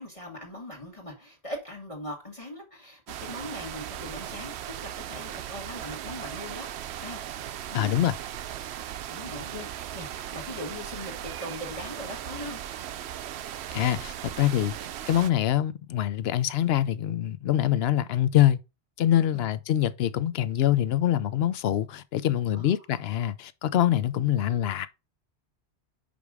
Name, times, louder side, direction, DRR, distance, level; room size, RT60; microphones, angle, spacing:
voice 1, 0.0-4.5 4.8-6.7 7.0-7.4 7.7-8.1 9.1-12.6 19.3-19.5 22.6-22.7, left 1 dB, 30° left, 1.6 m, -40 dB
sound 1, 3.1-15.3, right 11 dB, 75° right, 0.8 m, -38 dB
voice 2, 7.7-8.1 13.7-14.7 15.1-18.6 19.0-24.9, left 12 dB, 70° left, 0.8 m, -24 dB
5.2 x 5.2 x 4.7 m
omnidirectional pair, 1.1 m